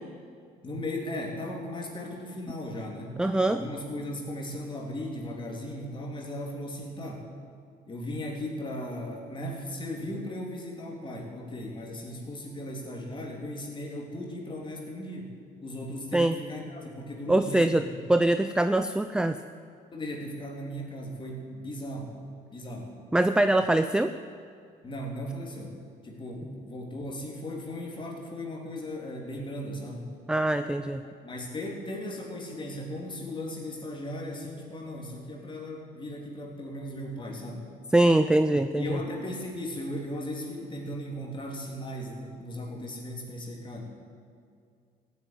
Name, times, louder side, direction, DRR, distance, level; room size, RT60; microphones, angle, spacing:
voice 1, 0.6-7.3 7.9-15.3 15.6-17.8 19.9-22.2 22.5-23.0 23.5-23.6 24.8-25.8 26.0-30.1 31.0-37.7 38.8-43.9, left 1 dB, 30° left, 0 dB, 3.5 m, -37 dB
voice 2, 3.2-3.6 16.1-16.4 17.3-19.4 23.1-24.1 30.3-31.1 37.9-39.0, right 1 dB, 5° right, 10 dB, 0.5 m, -23 dB
15.0 x 9.5 x 9.3 m, 2.2 s
cardioid pair, 110°, 17 cm